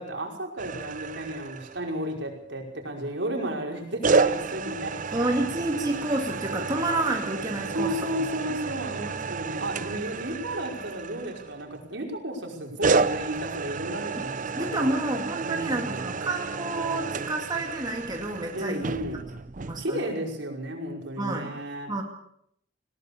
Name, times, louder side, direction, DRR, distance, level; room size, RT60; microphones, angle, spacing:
voice 1, 0.0-5.4 7.7-14.9 15.4-16.0 18.5-19.3 19.8-21.9, right 1 dB, 75° right, 1 dB, 5.4 m, -33 dB
sound 1, 0.6-2.1 4.0-11.9 12.8-19.8, right 4 dB, 45° right, 0.7 m, -30 dB
voice 2, 5.1-8.0 14.2-14.3 14.6-18.9 19.6-20.0 21.2-21.6 21.9-22.0, right 2 dB, 25° right, 1 dB, 2.3 m, -29 dB
21.0 x 18.5 x 6.9 m, 0.72 s
head